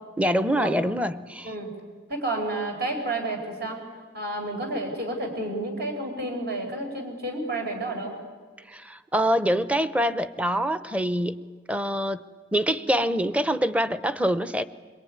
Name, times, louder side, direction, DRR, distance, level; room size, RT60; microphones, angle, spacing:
voice 1, 0.2-1.5 8.7-11.4 11.7-12.2 12.5-14.6, equal, 10° right, 12 dB, 0.8 m, -25 dB
voice 2, 2.1-3.8 4.1-8.1, right 2 dB, 60° right, 2 dB, 5.2 m, -30 dB
26.0 x 22.5 x 9.5 m, 1.5 s
head